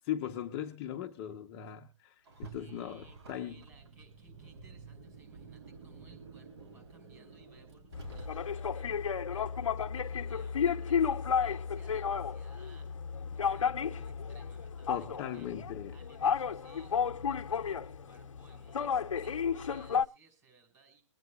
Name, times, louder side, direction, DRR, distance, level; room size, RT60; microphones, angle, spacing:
voice 1, 0.1-3.6 14.9-16.0, left 10 dB, 30° left, 0.7 m, -39 dB
Car, 2.2-8.8, right 3 dB, 55° right, 3.2 m, -50 dB
voice 2, 2.5-15.5 15.9-21.0, right 4 dB, 15° right, 5.5 m, -63 dB
sound 1, 7.9-20.0, left 7 dB, 85° left, 0.7 m, -33 dB
23.0 x 9.3 x 2.3 m
hypercardioid pair, 145°, 16 cm